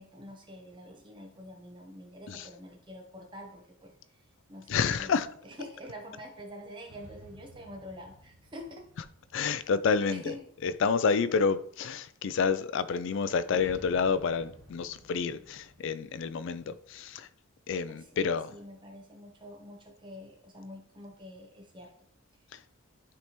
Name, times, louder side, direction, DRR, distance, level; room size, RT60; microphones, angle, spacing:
voice 1, 0.0-4.2 4.5-5.1 5.4-8.9 9.5-9.6 10.1-10.5 11.0-11.1 17.9-21.9, equal, 20° right, 0.9 m, -46 dB
voice 2, 4.7-5.3 9.0-9.1 9.3-17.3 17.7-18.6 22.5-22.6, left 5 dB, 55° left, 0.3 m, -29 dB
sound 1, 6.9-10.5 13.5-17.3, right 1 dB, 5° right, 1.9 m, -54 dB
9.7 x 3.4 x 3.0 m
head